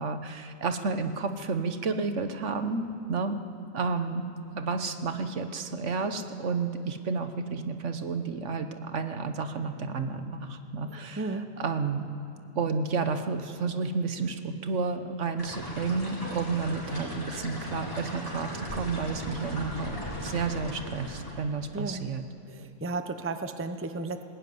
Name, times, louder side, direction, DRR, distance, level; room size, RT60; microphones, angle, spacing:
voice 1, 0.0-3.4 3.7-4.2 4.5-11.3 11.6-12.1 12.5-22.2, right 4 dB, 65° right, 8 dB, 1.4 m, -31 dB
voice 2, 10.9-11.5 21.7-22.1 22.5-24.2, right 3 dB, 15° right, 8 dB, 0.7 m, -34 dB
sound 1, 15.4-21.4, equal, 25° left, 5.1 m, -38 dB
20.0 x 17.5 x 9.5 m, 2.4 s
omnidirectional pair, 1.3 m